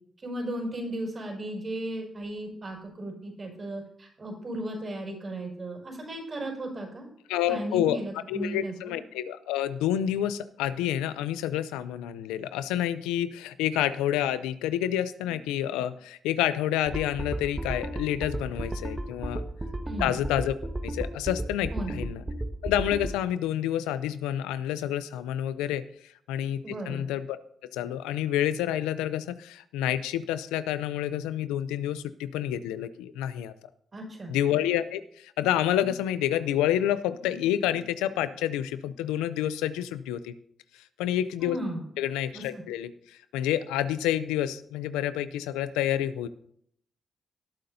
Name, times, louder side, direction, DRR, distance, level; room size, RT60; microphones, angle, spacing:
voice 1, 0.2-7.1 7.4-8.9 19.8-20.2 21.7-22.0 26.6-27.0 33.9-34.4 41.4-41.9 42.3-42.6, right 1 dB, 50° right, 1 dB, 5.5 m, -36 dB
voice 2, 7.3-8.0 8.3-19.4 20.0-20.6 20.8-22.2 22.6-25.8 26.3-27.4 27.7-33.5 34.3-40.3 41.0-41.6 42.0-46.3, left 11 dB, 90° left, 14 dB, 0.5 m, -28 dB
sound 1, 16.9-23.2, right 1 dB, 25° right, 1.4 m, -34 dB
18.0 x 8.7 x 2.7 m, 0.69 s
hypercardioid pair, 40°, 0 cm